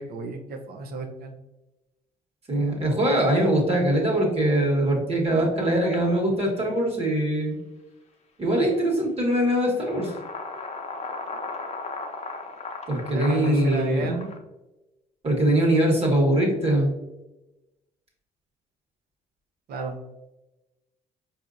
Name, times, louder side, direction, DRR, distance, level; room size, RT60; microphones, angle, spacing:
voice 1, 0.0-1.3 13.1-14.4 19.7-20.0, right 2 dB, 65° right, 4 dB, 0.7 m, -31 dB
voice 2, 2.5-7.6 8.4-10.1 12.9-14.1 15.2-17.0, right 1 dB, 35° right, -1 dB, 1.4 m, -22 dB
sound 1, 5.9-6.0 6.5-6.6 8.7-8.8 9.4-14.4, left 3 dB, 40° left, 0.7 m, -37 dB
4.6 x 2.7 x 2.5 m, 1.0 s
supercardioid pair, 70°, 17 cm